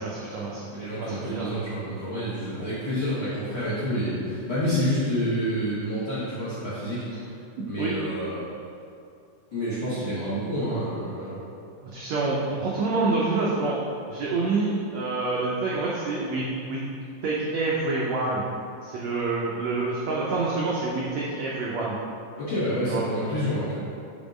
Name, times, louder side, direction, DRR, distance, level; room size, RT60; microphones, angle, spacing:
voice 1, 0.0-0.7 1.0-1.5 7.8-8.0 11.9-13.8 14.1-16.8 17.2-18.4 18.8-22.0 22.9-23.0, right 3 dB, 85° right, -5 dB, 1.5 m, -27 dB
voice 2, 0.7-7.3 7.7-8.4 9.5-11.4 22.4-23.8, equal, 55° left, -12 dB, 1.3 m, -28 dB
5.2 x 3.6 x 5.1 m, 2.5 s
omnidirectional pair, 3.8 m